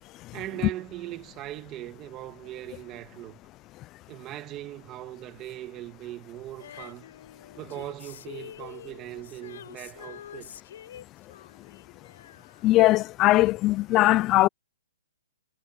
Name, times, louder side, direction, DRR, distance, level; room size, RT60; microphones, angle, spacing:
voice 1, 0.3-3.4 4.1-7.1 7.6-10.5, right 14 dB, 15° right, 1.8 m, -39 dB
Female singing, 6.6-13.2 13.5-13.6, left 10 dB, 50° left, 5.1 m, -47 dB
voice 2, 12.6-14.5, left 17 dB, 15° left, 0.4 m, -20 dB
hypercardioid pair, 170°, 0 cm